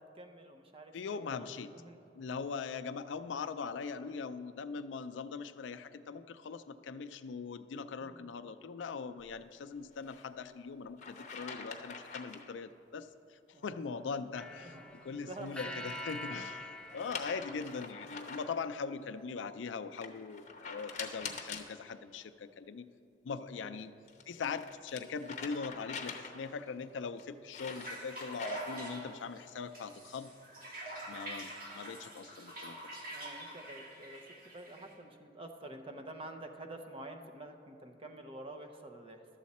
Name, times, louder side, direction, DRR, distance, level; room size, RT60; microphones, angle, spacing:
voice 1, 0.0-1.5 1.7-2.0 7.9-8.4 13.5-13.9 14.6-14.8 15.1-16.0 16.4-16.5 23.5-23.8 28.8-29.2 33.1-34.2 34.5-39.2, right 1 dB, 30° right, 5 dB, 0.7 m, -49 dB
voice 2, 0.9-1.7 2.2-14.7 15.0-16.7 16.9-22.9 23.2-23.9 24.3-30.3 31.1-32.8, left 5 dB, 85° left, 10 dB, 0.4 m, -41 dB
sound 1, 10.0-10.2 11.0-12.5 15.4-16.3 17.0-18.6 20.0-21.7 23.8-26.6 27.2-28.9, left 5 dB, 40° left, 0.8 m, -45 dB
sound 2, 14.3-18.6, left 1 dB, 5° left, 0.5 m, -46 dB
sound 3, 27.5-34.9, right 1 dB, 50° right, 1.6 m, -45 dB
12.0 x 7.3 x 4.2 m, 2.7 s
head